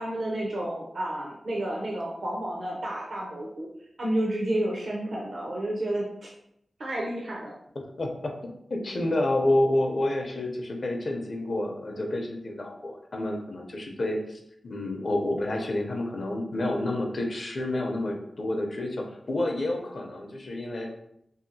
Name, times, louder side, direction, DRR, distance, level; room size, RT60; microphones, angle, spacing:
voice 1, 0.0-3.7 4.0-6.3 6.8-7.6, right 1 dB, 60° right, -3 dB, 0.5 m, -30 dB
voice 2, 8.0-8.4 8.7-20.9, left 1 dB, 50° left, 2 dB, 0.5 m, -29 dB
2.7 x 2.7 x 2.6 m, 0.76 s
wide cardioid pair, 110°, 0 cm